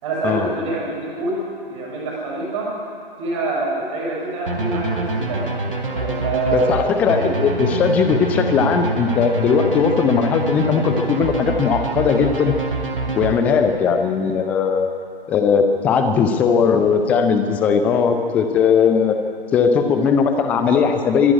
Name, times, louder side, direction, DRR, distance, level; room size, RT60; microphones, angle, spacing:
voice 1, 0.0-2.7 3.2-5.5 5.9-7.4, right 3 dB, 35° right, -5 dB, 6.6 m, -26 dB
sound 1, 4.5-13.8, right 2 dB, 65° right, 3.5 m, -25 dB
voice 2, 6.5-12.6 13.2-14.9 15.3-19.2 19.5-21.3, left 6 dB, 5° left, 6 dB, 0.5 m, -18 dB
24.5 x 11.0 x 9.7 m, 2.5 s
figure-of-eight pair, 135°, 29 cm